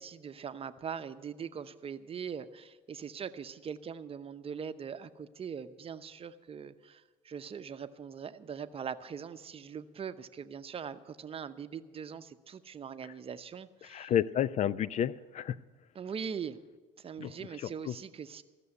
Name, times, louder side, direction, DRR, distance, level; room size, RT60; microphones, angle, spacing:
voice 1, 0.0-14.1 15.9-16.6 17.0-18.4, right 7 dB, 35° right, 12 dB, 0.7 m, -41 dB
voice 2, 13.8-15.6 17.2-17.3 17.6-17.9, left 10 dB, 45° left, 19 dB, 0.4 m, -31 dB
15.0 x 6.9 x 9.7 m, 1.3 s
hypercardioid pair, 65°, 16 cm